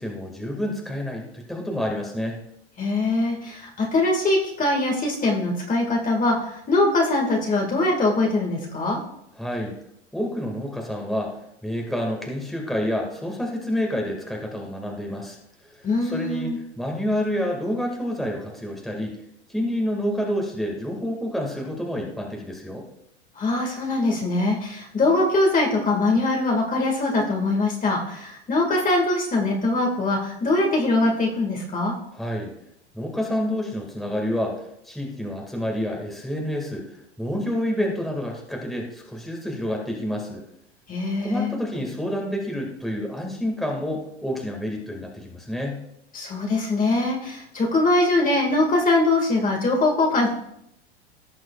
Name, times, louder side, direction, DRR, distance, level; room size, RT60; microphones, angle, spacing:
voice 1, 0.0-2.4 9.4-9.8 10.1-11.3 11.6-15.4 16.0-19.2 19.5-22.8 32.1-32.5 32.9-36.9 37.2-40.4 41.2-45.8, equal, ahead, 0 dB, 2.0 m, -28 dB
voice 2, 2.8-9.0 15.8-16.6 23.4-31.9 40.9-41.5 46.1-50.3, left 2 dB, 25° left, 0 dB, 2.0 m, -22 dB
17.0 x 6.1 x 2.4 m, 0.77 s
hypercardioid pair, 95°, 35 cm